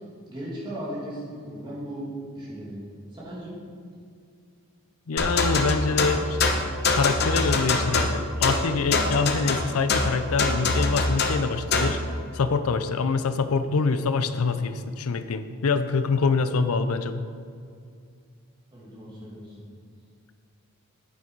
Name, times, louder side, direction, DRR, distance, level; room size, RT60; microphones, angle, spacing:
voice 1, 0.3-2.8 3.1-3.5 18.7-19.6, right 1 dB, 20° right, -7 dB, 2.5 m, -36 dB
voice 2, 5.1-6.4 6.9-12.0 12.3-17.3, left 4 dB, 80° left, 11 dB, 0.5 m, -25 dB
sound 1, 5.2-12.0, left 3 dB, 45° left, 0.8 m, -24 dB
8.9 x 8.5 x 4.6 m, 2.3 s
head